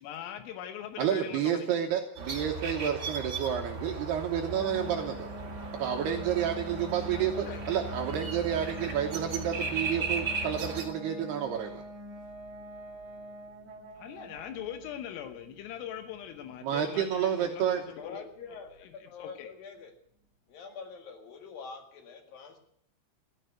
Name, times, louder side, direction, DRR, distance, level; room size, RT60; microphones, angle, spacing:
voice 1, 0.0-1.8 7.1-8.0 14.0-18.2 19.2-19.5, left 10 dB, 85° left, 3.7 m, -42 dB
voice 2, 1.0-5.3 5.8-11.8 16.6-17.8, right 9 dB, 75° right, 2.6 m, -30 dB
sound 1, 2.1-10.8, right 3 dB, 35° right, 1.8 m, -37 dB
sound 2, 4.5-19.1, equal, 55° right, 2.4 m, -46 dB
voice 3, 18.0-19.9 20.5-22.6, left 5 dB, 55° left, 3.1 m, -45 dB
15.0 x 10.0 x 9.2 m
omnidirectional pair, 5.8 m